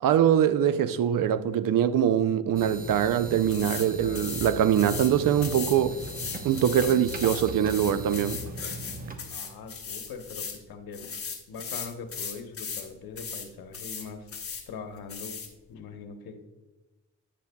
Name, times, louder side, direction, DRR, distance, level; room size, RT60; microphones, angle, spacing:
voice 1, 0.0-6.0 6.4-8.4, right 9 dB, 60° right, 0.5 m, -23 dB
sound 1, 2.5-9.2, right 2 dB, 25° right, 1.0 m, -38 dB
sound 2, 3.5-3.9 4.1-5.1 5.4-10.6 10.9-12.9 13.2-13.5 13.7-14.6 15.1-15.5, left 6 dB, 35° left, 1.2 m, -37 dB
voice 2, 3.7-4.2 9.2-11.1 11.5-14.3 14.7-15.4 15.7-16.4, left 5 dB, 70° left, 1.1 m, -42 dB
9.9 x 9.5 x 2.3 m
cardioid pair, 95°, 37 cm